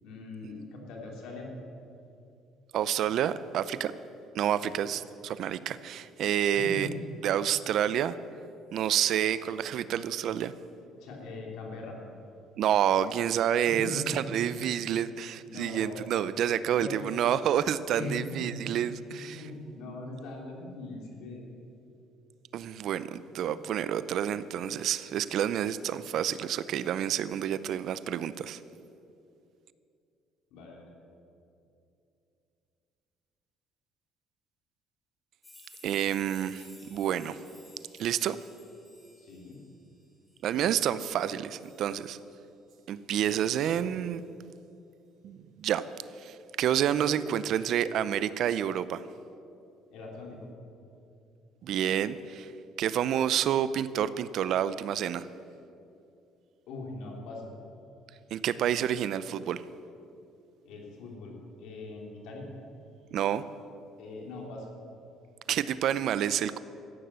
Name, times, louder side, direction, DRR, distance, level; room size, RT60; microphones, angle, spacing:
voice 1, 0.0-1.5 4.5-4.8 6.5-6.9 11.0-12.0 13.7-14.6 15.4-16.0 16.8-17.1 17.9-18.6 19.2-21.4 30.5-30.9 39.2-39.6 49.9-50.5 56.7-57.5 60.6-62.5 64.0-64.7, left 2 dB, 75° left, 0 dB, 3.2 m, -41 dB
voice 2, 2.7-3.9 4.3-6.9 7.2-8.2 8.7-10.5 12.6-19.4 22.5-28.6 35.8-37.4 38.0-38.4 40.4-42.2 42.9-44.2 45.2-45.8 46.2-49.0 51.6-52.5 52.8-55.3 58.3-59.6 63.1-63.4 65.5-66.6, right 10 dB, 65° right, 15 dB, 0.5 m, -29 dB
sound 1, 35.4-42.3 42.7-42.8 44.1-44.2, left 1 dB, 15° left, 3.1 m, -56 dB
13.5 x 9.4 x 7.5 m, 2.7 s
cardioid pair, 105°, 0 cm